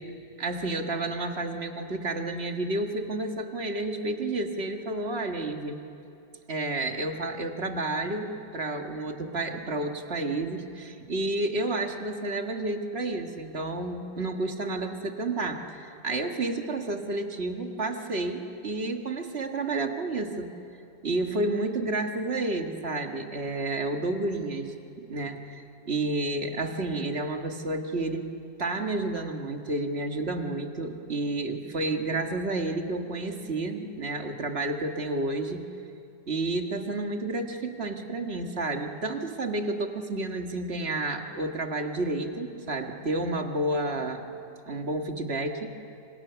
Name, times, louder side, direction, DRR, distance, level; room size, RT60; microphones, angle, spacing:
voice 1, 0.4-5.8 6.5-20.5 21.0-28.3 28.6-35.7 36.3-44.2 44.7-45.7, right 2 dB, 35° right, 4 dB, 1.9 m, -30 dB
27.5 x 26.5 x 7.0 m, 2.7 s
omnidirectional pair, 2.1 m